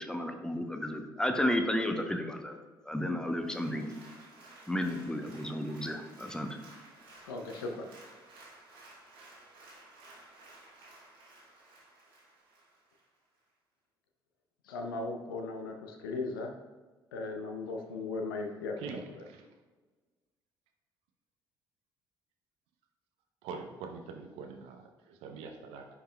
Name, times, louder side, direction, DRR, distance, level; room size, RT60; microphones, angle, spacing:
voice 1, 0.0-2.5 2.8-3.9 4.7-6.6, left 1 dB, 5° left, 5 dB, 0.8 m, -32 dB
Applause, 3.3-13.0 13.5-13.6, right 2 dB, 75° right, 1.6 m, -55 dB
voice 2, 7.3-7.9 14.6-16.5 17.1-18.7 19.2-19.3, left 3 dB, 75° left, 3 dB, 0.6 m, -37 dB
voice 3, 18.8-19.5 23.4-25.9, right 5 dB, 60° right, 5 dB, 0.6 m, -44 dB
9.7 x 4.5 x 2.3 m, 1.4 s
figure-of-eight pair, 50°, 12 cm